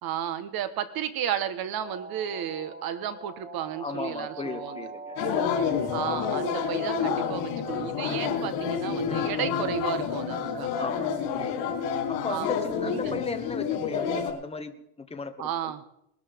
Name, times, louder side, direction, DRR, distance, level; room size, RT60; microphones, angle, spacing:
voice 1, 0.0-4.9 5.9-10.8 12.3-12.5 12.8-13.1 15.4-15.8, right 9 dB, 45° right, 12 dB, 1.4 m, -33 dB
sound 1, 1.8-7.8, right 3 dB, 20° right, 2.3 m, -42 dB
voice 2, 3.8-5.2 9.1-9.3 10.8-11.7 12.1-15.3 15.6-15.7, left 4 dB, 10° left, 7 dB, 1.1 m, -36 dB
sound 2, 5.2-14.3, left 7 dB, 75° left, 3.6 m, -29 dB
21.0 x 13.0 x 3.7 m, 0.79 s
cardioid pair, 130°, 48 cm